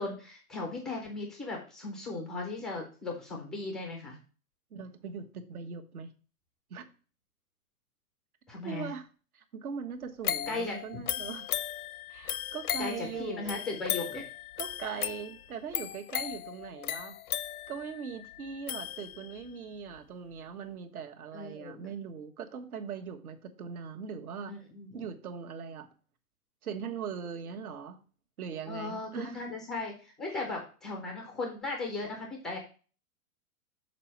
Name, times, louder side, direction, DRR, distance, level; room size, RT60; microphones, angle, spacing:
voice 1, 0.0-4.2 8.5-8.9 10.5-10.8 12.8-14.2 21.3-21.9 24.5-25.0 28.7-32.6, left 3 dB, ahead, 1 dB, 0.3 m, -37 dB
voice 2, 4.7-6.1 6.7-6.9 8.6-9.1 9.3-11.5 12.1-13.6 14.1-14.2 14.6-17.2 17.7-24.5 24.9-25.9 26.6-28.0 28.4-29.4 30.3-30.5, right 6 dB, 75° right, 6 dB, 1.4 m, -40 dB
sound 1, 10.2-19.5 20.0-20.1, left 11 dB, 80° left, 0.7 m, -37 dB
6.7 x 4.3 x 5.6 m, 0.38 s
hypercardioid pair, 135°, 44 cm